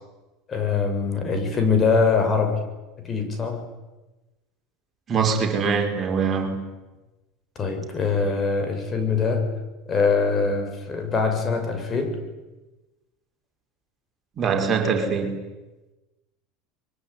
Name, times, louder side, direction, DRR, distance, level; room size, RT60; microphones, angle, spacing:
voice 1, 0.5-2.7 3.0-3.6 7.6-9.5 9.9-12.2, left 4 dB, 30° left, 6.9 m, -23 dB
voice 2, 5.1-6.6 14.4-15.4, right 5 dB, 35° right, 5.6 m, -23 dB
24.0 x 22.0 x 9.7 m
hypercardioid pair, 95°, 0 cm